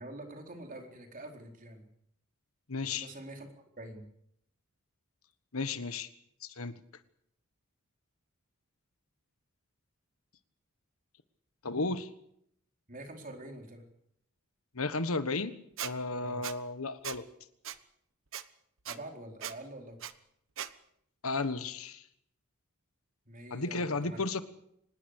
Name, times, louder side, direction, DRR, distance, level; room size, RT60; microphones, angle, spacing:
voice 1, 0.0-1.9 2.9-3.5 3.8-4.1 12.9-13.9 16.2-16.4 18.9-20.0 23.3-24.3, right 1 dB, 40° right, 3 dB, 4.2 m, -45 dB
voice 2, 2.7-3.1 5.5-6.1 6.4-6.7 11.6-12.1 14.7-15.5 15.8-17.2 21.2-22.1 23.5-24.4, left 3 dB, 75° left, 12 dB, 1.4 m, -33 dB
Squeak, 15.8-15.9 16.4-16.5 17.0-17.2 17.6-17.8 18.3-18.4 18.8-19.0 19.4-19.5 20.0-20.1 20.6-20.7, right 10 dB, 65° right, 1.2 m, -38 dB
25.0 x 20.0 x 6.7 m, 0.74 s
head